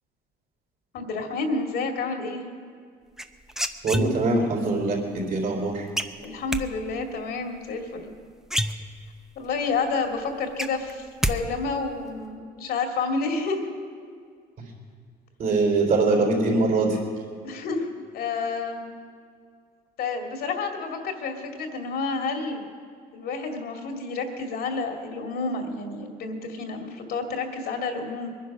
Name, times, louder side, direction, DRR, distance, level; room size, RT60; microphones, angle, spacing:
voice 1, 0.9-2.4 6.2-8.1 9.4-13.7 17.4-17.9 18.1-18.9 20.0-22.6 23.1-28.3, left 4 dB, 65° left, 4 dB, 2.3 m, -29 dB
sound 1, 3.2-4.5 6.0-6.6 8.1-8.2 8.4-9.3 9.7-9.8 10.1-11.4 11.6-12.1, equal, 5° right, 0.7 m, -28 dB
voice 2, 3.8-5.9 15.4-17.0, right 3 dB, 55° right, 1 dB, 3.7 m, -23 dB
21.5 x 10.0 x 6.0 m, 2.2 s
cardioid pair, 110°, 17 cm